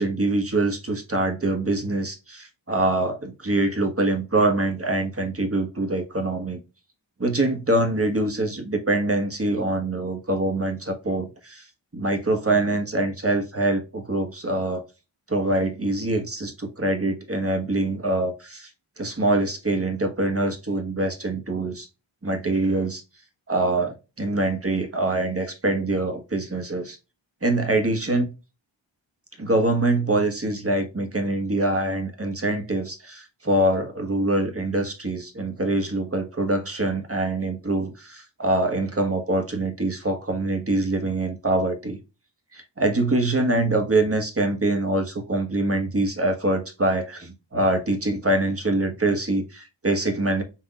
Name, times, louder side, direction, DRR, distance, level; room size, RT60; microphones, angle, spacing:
voice 1, 0.0-6.6 7.2-11.6 11.9-14.8 15.3-18.7 19.0-21.9 22.2-23.0 23.5-27.0 27.4-28.3 29.4-42.0 42.5-50.4, right 2 dB, 30° right, 1.3 m, -24 dB
5.9 x 3.5 x 2.4 m
wide cardioid pair, 50°, 47 cm